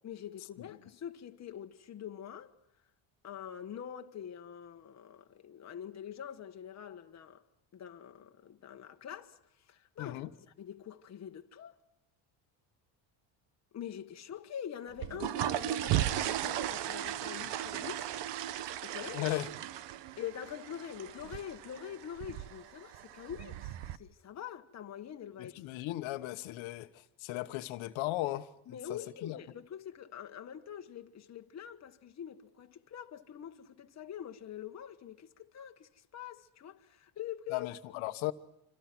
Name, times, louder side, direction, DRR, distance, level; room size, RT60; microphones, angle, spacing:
voice 1, 0.0-2.5 3.2-7.4 7.7-9.4 9.7-10.2 10.6-11.8 13.7-18.1 18.8-19.3 20.2-25.8 28.7-37.7 37.9-38.0, left 9 dB, 35° left, 1.4 m, -45 dB
voice 2, 10.0-10.3 19.1-19.5 25.4-28.5 29.2-29.4 37.5-38.3, left 17 dB, 85° left, 1.3 m, -36 dB
sound 1, 14.9-24.0, right 12 dB, 65° right, 1.1 m, -36 dB
27.5 x 26.0 x 6.1 m
cardioid pair, 135°, 46 cm